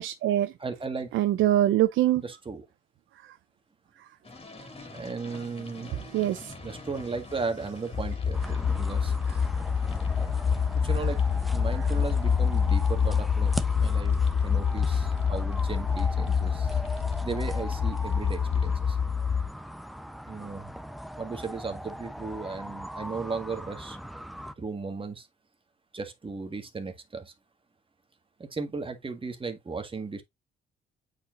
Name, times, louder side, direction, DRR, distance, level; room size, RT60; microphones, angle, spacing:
voice 1, 0.0-0.5 1.1-2.2 3.1-3.4 4.0-4.1 6.1-6.5 9.3-9.4 11.0-11.1 11.8-11.9, right 13 dB, 80° right, 0.6 m, -25 dB
voice 2, 0.6-1.1 2.2-2.6 4.9-5.9 6.6-9.1 10.8-11.2 11.5-14.2 14.4-16.8 17.2-19.0 20.3-20.7 21.2-24.0 24.6-25.3 25.9-27.3 28.4-30.2, right 4 dB, 25° right, 1.7 m, -36 dB
sound 1, 4.2-18.8, left 3 dB, 30° left, 2.7 m, -44 dB
sound 2, 7.9-19.5, left 6 dB, 60° left, 1.4 m, -26 dB
sound 3, 8.3-24.5, equal, ahead, 0.8 m, -40 dB
8.4 x 4.8 x 2.6 m
cardioid pair, 90°, 20 cm